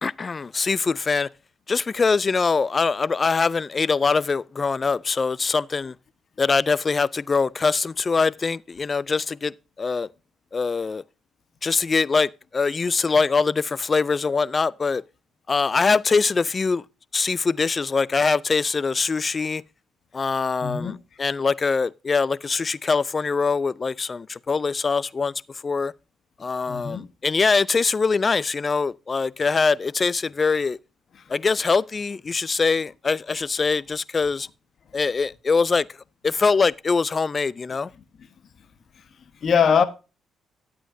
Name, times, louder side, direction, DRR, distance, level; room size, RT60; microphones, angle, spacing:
voice 1, 0.0-1.3 1.7-5.9 6.4-9.5 9.8-10.1 10.5-11.0 11.6-15.0 15.5-16.8 17.1-19.6 20.1-25.3 25.6-25.9 26.4-30.8 31.3-34.5 34.9-35.9 36.2-37.9, left 4 dB, 35° left, 0.3 m, -23 dB
voice 2, 20.6-21.0 26.7-27.0 39.4-39.8, left 7 dB, 55° left, 1.2 m, -21 dB
12.5 x 8.5 x 2.7 m
cardioid pair, 90°, 0 cm